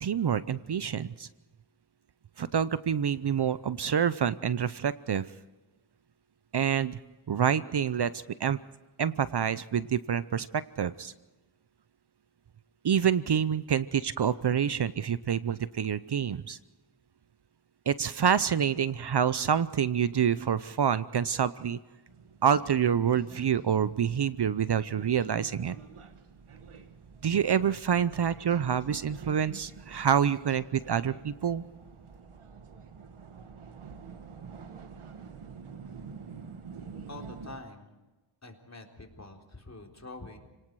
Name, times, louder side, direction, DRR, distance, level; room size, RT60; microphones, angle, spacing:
voice 1, 0.0-1.3 2.4-5.3 6.5-7.0 7.3-8.6 9.0-11.1 12.8-16.6 17.9-21.8 22.4-25.8 27.2-31.6, right 8 dB, 55° right, 16 dB, 0.7 m, -27 dB
sound 1, 22.1-37.6, right 5 dB, 90° right, 1.6 m, -47 dB
voice 2, 37.1-38.0 38.4-40.4, left 2 dB, 35° left, 1 dB, 3.9 m, -46 dB
29.5 x 19.0 x 4.8 m, 1.1 s
cardioid pair, 60°, 49 cm